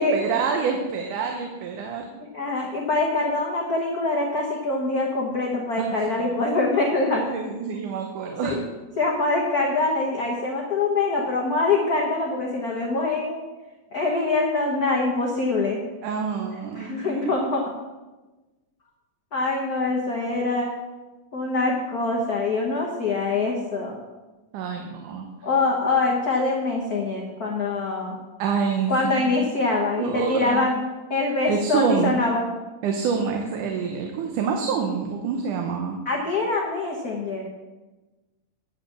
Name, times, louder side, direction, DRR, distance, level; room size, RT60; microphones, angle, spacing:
voice 1, 0.0-2.0 6.1-6.3 7.1-8.6 16.0-17.3 24.5-25.3 28.4-29.4 29.7-30.6 31.5-32.2 32.8-36.0, right 6 dB, 80° right, 3 dB, 2.4 m, -27 dB
voice 2, 2.3-7.2 8.4-8.6 9.0-13.5 13.9-15.8 16.7-17.6 19.3-20.7 21.3-24.0 25.4-28.2 28.9-30.8 31.1-32.4 36.0-37.5, left 3 dB, 85° left, -1 dB, 0.8 m, -24 dB
10.0 x 5.4 x 7.3 m, 1.2 s
omnidirectional pair, 3.6 m